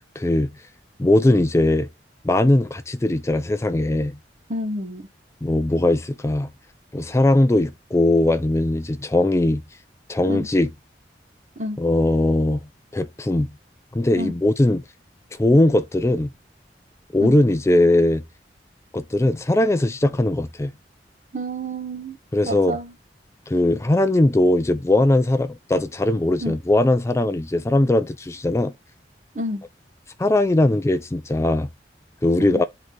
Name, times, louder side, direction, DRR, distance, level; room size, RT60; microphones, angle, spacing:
voice 1, 0.2-0.5 1.0-1.9 2.2-4.2 5.4-6.5 6.9-9.6 10.1-10.7 11.8-12.6 12.9-13.5 13.9-14.8 15.4-16.3 17.1-18.2 18.9-20.7 22.3-22.8 23.5-28.7 30.2-31.7 32.2-32.6, left 1 dB, 15° left, 0.4 m, -19 dB
voice 2, 4.5-5.1 10.3-10.5 11.6-11.8 14.2-14.3 17.2-17.4 21.3-22.2 22.4-22.9 26.4-26.6 29.3-29.6 32.4-32.6, equal, 45° right, 1.0 m, -29 dB
7.9 x 3.8 x 3.2 m
head